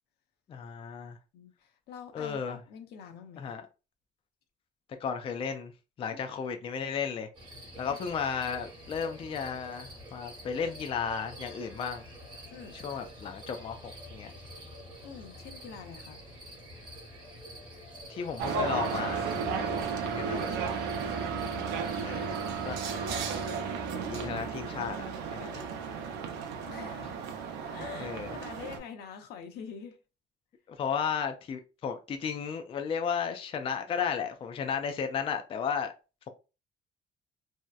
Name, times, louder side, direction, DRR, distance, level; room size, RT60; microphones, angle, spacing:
voice 1, 0.5-1.2 2.1-2.6 3.4-3.6 5.0-5.7 6.0-7.3 7.8-12.0 12.7-14.3 18.1-20.6 22.0-22.3 22.6-22.8 24.0-25.0 25.3-25.8 28.0-28.3 30.7-35.9, left 6 dB, 35° left, 0.3 m, -34 dB
voice 2, 1.3-3.5 6.1-6.2 7.9-8.0 12.5-12.8 15.0-16.2 21.3-22.2 26.7-27.2 27.7-30.0, left 7 dB, 75° left, 0.6 m, -46 dB
sound 1, 7.3-23.5, equal, 25° right, 1.0 m, -47 dB
sound 2, 18.4-28.8, right 5 dB, 85° right, 0.5 m, -34 dB
2.7 x 2.0 x 2.2 m
cardioid pair, 110°, 17 cm